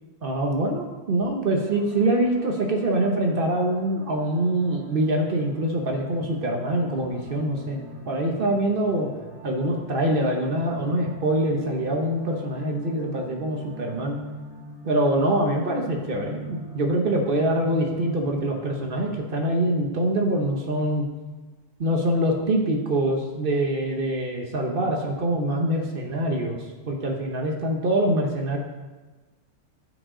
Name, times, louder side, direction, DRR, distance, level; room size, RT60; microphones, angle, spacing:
voice 1, 0.2-7.8 8.1-9.1 9.4-14.2 14.8-21.1 21.8-28.6, right 1 dB, 70° right, 1 dB, 0.5 m, -24 dB
sound 1, 1.6-19.2, right 2 dB, 45° left, 2.5 m, -43 dB
14.5 x 5.1 x 3.8 m, 1.3 s
omnidirectional pair, 2.4 m